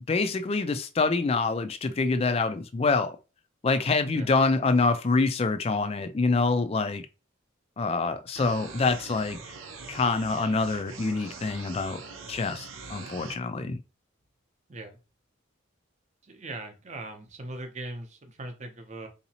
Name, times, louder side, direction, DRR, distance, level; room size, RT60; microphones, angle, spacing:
voice 1, 0.1-3.2 3.6-7.1 7.8-9.4 9.9-12.0 12.3-13.8, left 3 dB, 30° left, 0.3 m, -26 dB
sound 1, 8.4-13.4, right 4 dB, 85° right, 0.7 m, -43 dB
voice 2, 16.2-19.1, right 2 dB, 35° right, 0.6 m, -40 dB
3.9 x 2.7 x 2.8 m
head